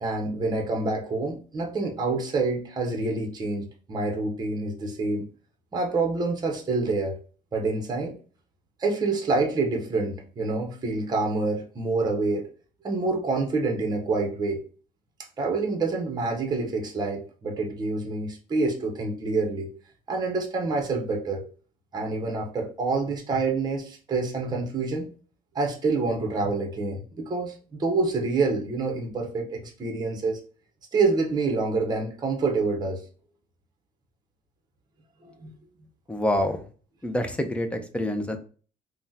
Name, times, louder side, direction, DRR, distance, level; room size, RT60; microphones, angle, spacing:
voice 1, 0.0-5.3 5.7-7.2 7.5-8.1 8.8-12.5 12.8-14.6 15.4-19.7 20.1-21.5 21.9-25.1 25.5-30.4 30.9-33.0 35.2-35.5, right 3 dB, 25° right, 1 dB, 0.7 m, -27 dB
voice 2, 36.1-36.6 37.0-38.4, left 1 dB, 5° left, 7 dB, 0.5 m, -26 dB
3.5 x 2.1 x 2.7 m, 0.39 s
cardioid pair, 110°, 17 cm